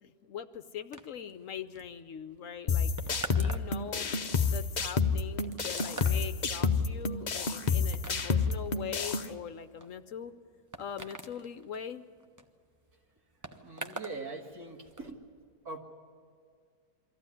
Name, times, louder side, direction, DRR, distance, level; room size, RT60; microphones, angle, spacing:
voice 1, 0.0-4.1 4.5-10.3 10.8-12.0, left 8 dB, 65° left, 11 dB, 1.0 m, -42 dB
sound 1, 0.9-14.2 14.5-15.1, right 2 dB, 15° right, 0.6 m, -46 dB
sound 2, 2.7-9.3, left 5 dB, 40° left, 0.7 m, -29 dB
voice 2, 13.6-15.2 15.6-15.8, right 3 dB, 70° right, 2 dB, 2.5 m, -42 dB
23.5 x 14.5 x 9.8 m, 2.2 s
omnidirectional pair, 1.7 m